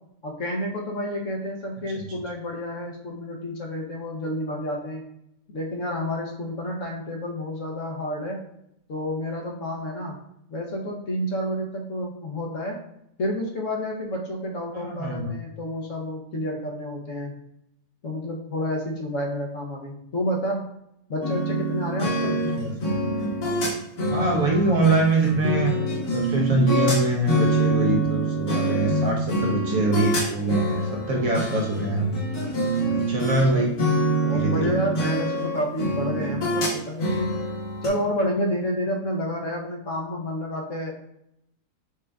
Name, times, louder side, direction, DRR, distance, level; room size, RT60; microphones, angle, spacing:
voice 1, 0.2-5.0 5.5-8.4 8.9-10.2 10.5-12.8 13.2-17.3 18.0-20.7 21.1-22.4 33.2-33.7 34.1-37.3 37.8-41.1, equal, 55° left, 0 dB, 1.0 m, -29 dB
voice 2, 14.7-15.3 22.6-22.7 24.1-25.7 26.1-32.1 32.8-33.7 34.3-34.7, right 2 dB, 60° right, 0 dB, 1.2 m, -23 dB
sound 1, 21.2-33.5 33.8-37.9, right 1 dB, 85° left, 2.0 m, -26 dB
6.2 x 2.4 x 3.4 m, 0.77 s
omnidirectional pair, 1.8 m